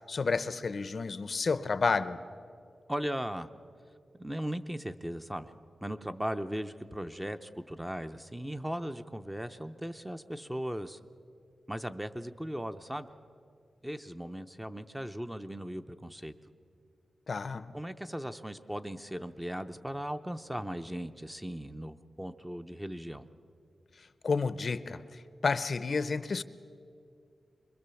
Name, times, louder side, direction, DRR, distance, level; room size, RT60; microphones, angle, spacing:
voice 1, 0.1-2.2 17.3-17.7 24.2-26.4, left 4 dB, 50° left, 0.6 m, -30 dB
voice 2, 2.9-3.5 4.2-5.5 5.8-11.0 11.7-13.1 13.8-16.3 17.7-23.3, equal, 5° right, 0.6 m, -38 dB
25.0 x 22.0 x 7.0 m
wide cardioid pair, 145°, 0 cm